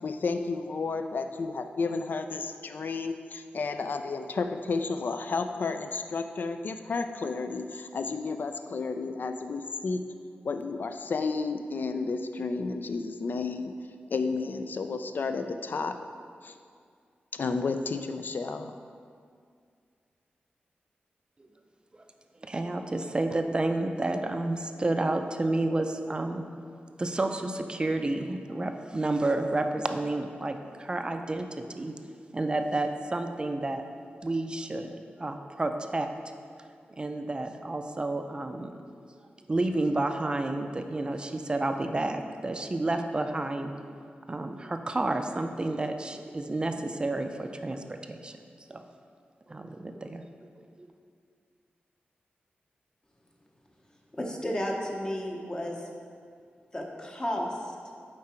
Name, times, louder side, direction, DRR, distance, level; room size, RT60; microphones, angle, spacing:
voice 1, 0.0-10.0 10.4-13.7 14.1-16.0 16.4-16.5 17.3-18.7, left 4 dB, 60° left, 8 dB, 0.4 m, -32 dB
voice 2, 22.4-26.5 27.0-31.9 32.3-33.8 34.2-34.9 35.2-36.1 37.0-38.8 39.5-43.7 44.3-48.3 48.7-48.8 49.5-50.2 50.6-50.9, right 2 dB, 25° right, 6 dB, 0.4 m, -30 dB
voice 3, 54.1-55.8 56.7-57.6, equal, 20° left, 0 dB, 0.9 m, -32 dB
7.5 x 4.7 x 4.4 m, 2.2 s
wide cardioid pair, 125°, 4 cm